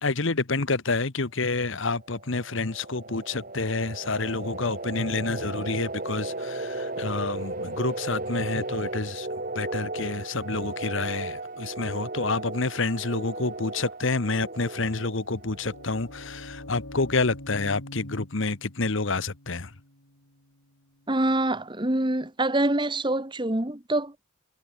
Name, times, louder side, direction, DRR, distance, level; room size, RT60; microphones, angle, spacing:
voice 1, 0.0-9.3 9.5-19.7, left 3 dB, 65° left, 1.2 m, -28 dB
sound 1, 2.0-16.5, right 2 dB, 40° right, 3.7 m, -36 dB
sound 2, 15.3-21.0, left 1 dB, 85° left, 7.4 m, -45 dB
voice 2, 21.1-24.1, right 1 dB, 20° right, 1.5 m, -25 dB
head